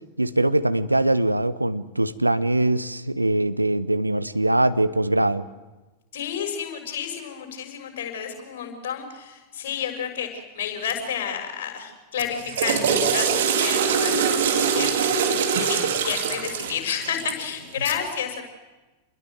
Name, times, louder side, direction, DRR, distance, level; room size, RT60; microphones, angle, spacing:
voice 1, 0.2-5.5, right 1 dB, 85° right, 13 dB, 0.9 m, -22 dB
voice 2, 6.1-15.3 15.6-18.4, left 8 dB, 55° left, 3 dB, 6.2 m, -31 dB
Water / Toilet flush, 12.3-17.5, right 7 dB, 60° right, 2.8 m, -23 dB
27.5 x 21.5 x 7.8 m, 1.2 s
figure-of-eight pair, 90°, 0 cm